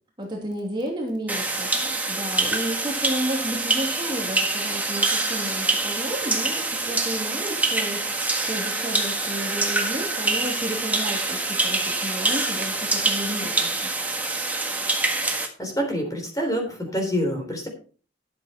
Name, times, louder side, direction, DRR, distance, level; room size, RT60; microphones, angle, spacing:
voice 1, 0.2-13.9, equal, 25° right, -1 dB, 2.7 m, -32 dB
sound 1, 1.3-15.5, right 2 dB, 10° right, 1.5 m, -25 dB
voice 2, 15.6-17.7, equal, 20° left, 2 dB, 3.5 m, -26 dB
12.0 x 7.3 x 4.3 m, 0.40 s
head